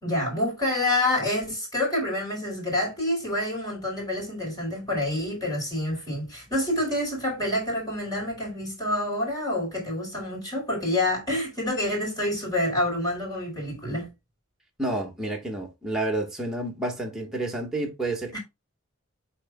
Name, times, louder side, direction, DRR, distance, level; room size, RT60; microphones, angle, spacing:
voice 1, 0.0-14.1 18.3-18.4, left 1 dB, 15° left, 4.6 m, -27 dB
voice 2, 14.8-18.4, right 2 dB, ahead, 1.9 m, -30 dB
12.0 x 4.2 x 2.4 m
head